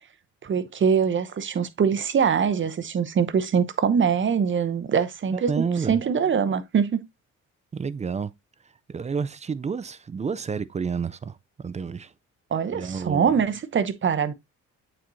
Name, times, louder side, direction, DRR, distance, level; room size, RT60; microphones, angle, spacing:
voice 1, 0.4-7.0 12.5-14.3, right 7 dB, 40° right, 0.8 m, -23 dB
voice 2, 5.3-6.0 7.7-8.3 8.9-12.1 12.7-13.3, right 5 dB, 25° right, 0.4 m, -30 dB
8.4 x 4.4 x 2.6 m
cardioid pair, 90°, 30 cm